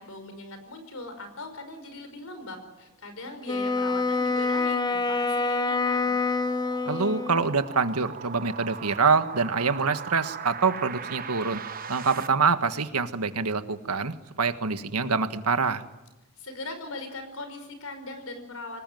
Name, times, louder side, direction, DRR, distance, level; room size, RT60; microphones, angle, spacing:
voice 1, 0.0-6.1 16.4-18.8, left 2 dB, 70° left, 8 dB, 5.3 m, -40 dB
Wind instrument woodwind instrument, 3.4-7.6, left 3 dB, 20° left, 1.0 m, -26 dB
sound 1, 4.1-12.3, right 6 dB, 40° right, 1.1 m, -40 dB
voice 2, 6.9-11.6 11.9-15.8, right 4 dB, 90° right, 9 dB, 1.6 m, -25 dB
25.0 x 20.0 x 9.3 m, 1.0 s
head